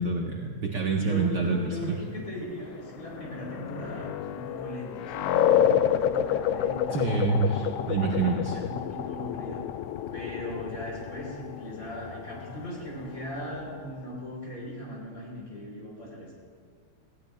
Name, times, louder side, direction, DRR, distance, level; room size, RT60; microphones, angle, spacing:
voice 1, 0.0-1.6 1.9-2.0 6.9-8.6, right 4 dB, 85° right, 0 dB, 0.9 m, -27 dB
voice 2, 1.0-7.5 7.9-9.6 10.1-16.4, equal, 30° left, -4 dB, 4.1 m, -39 dB
sound 1, 2.7-14.1, left 10 dB, 85° left, 1.4 m, -29 dB
19.5 x 15.5 x 2.3 m, 2.2 s
omnidirectional pair, 3.3 m